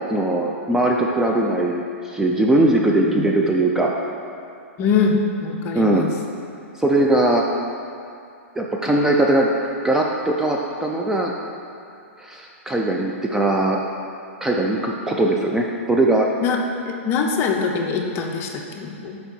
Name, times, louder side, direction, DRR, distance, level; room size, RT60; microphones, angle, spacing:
voice 1, 0.1-3.9 5.7-6.1 6.8-7.4 8.6-9.5 9.8-11.3 12.2-13.8 14.4-16.3, right 1 dB, 5° right, -1 dB, 0.3 m, -20 dB
voice 2, 4.8-6.1 16.4-16.6 16.9-19.2, left 5 dB, 35° left, 2 dB, 0.7 m, -23 dB
5.6 x 4.5 x 4.3 m, 2.5 s
hypercardioid pair, 130°, 7 cm